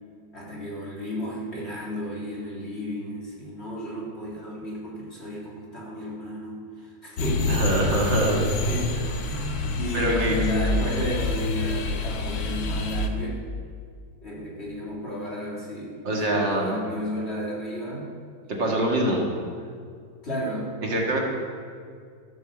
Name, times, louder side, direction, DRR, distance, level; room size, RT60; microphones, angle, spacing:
voice 1, 0.3-8.2 8.7-8.9 9.2-13.4 14.2-16.0 16.3-18.1 18.4-18.7 20.2-20.7, equal, 30° left, -4 dB, 2.7 m, -33 dB
sound 1, 7.2-13.1, left 2 dB, 65° left, 1.6 m, -27 dB
voice 2, 7.5-8.5 9.9-10.3 16.0-16.8 18.5-19.2 20.8-21.3, right 1 dB, 60° right, -1 dB, 2.5 m, -24 dB
13.5 x 8.0 x 7.0 m, 2.2 s
omnidirectional pair, 2.3 m